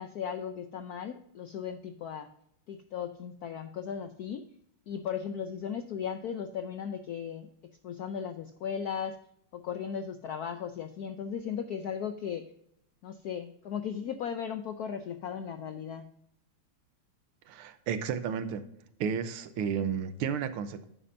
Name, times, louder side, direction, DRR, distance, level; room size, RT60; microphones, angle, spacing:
voice 1, 0.0-2.3 2.7-4.4 4.9-7.5 7.8-9.2 9.5-12.4 13.0-16.1, left 7 dB, 80° left, 8 dB, 0.8 m, -36 dB
voice 2, 17.5-18.6 19.0-20.8, right 7 dB, 85° right, 11 dB, 1.7 m, -32 dB
11.0 x 8.8 x 2.6 m, 0.73 s
omnidirectional pair, 2.3 m